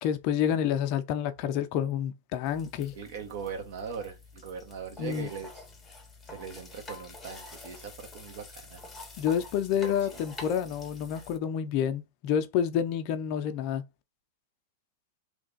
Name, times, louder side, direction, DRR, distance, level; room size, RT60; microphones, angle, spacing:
voice 1, 0.0-2.9 5.0-5.3 9.2-13.8, left 9 dB, 45° left, 0.5 m, -29 dB
sound 1, 2.4-11.4, left 3 dB, 10° left, 0.8 m, -47 dB
voice 2, 2.9-5.6 6.3-8.8 9.8-10.2, right 6 dB, 60° right, 1.1 m, -40 dB
3.2 x 2.3 x 3.9 m
hypercardioid pair, 130°, 0 cm